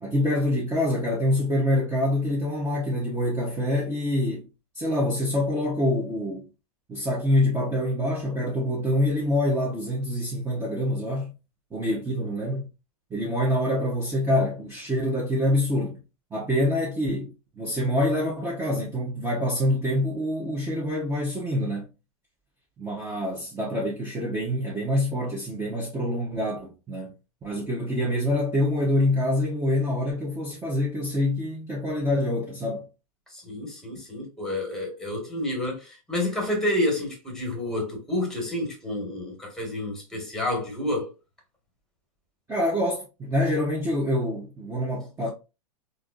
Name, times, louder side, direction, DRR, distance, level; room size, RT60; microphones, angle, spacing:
voice 1, 0.0-4.5 4.7-6.5 6.9-11.3 11.7-12.7 13.1-16.0 16.3-21.9 22.8-27.1 27.4-32.9 42.5-45.3, left 1 dB, 15° right, 1.0 m, -26 dB
voice 2, 33.3-41.1, left 1 dB, 5° left, 1.6 m, -29 dB
3.5 x 2.6 x 2.5 m
hypercardioid pair, 120°, 18 cm